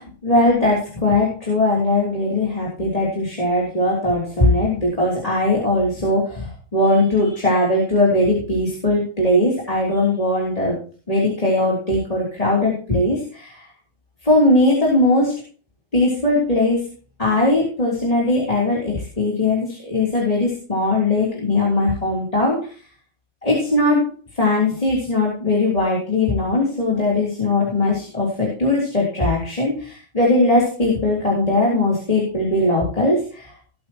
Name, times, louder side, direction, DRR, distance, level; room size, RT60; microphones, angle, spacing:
voice 1, 0.0-10.8 11.1-13.5 14.2-15.3 15.9-16.8 17.2-22.6 23.4-24.0 24.4-33.4, left 2 dB, 25° left, -3 dB, 3.4 m, -19 dB
19.0 x 8.8 x 3.0 m, 0.39 s
omnidirectional pair, 1.5 m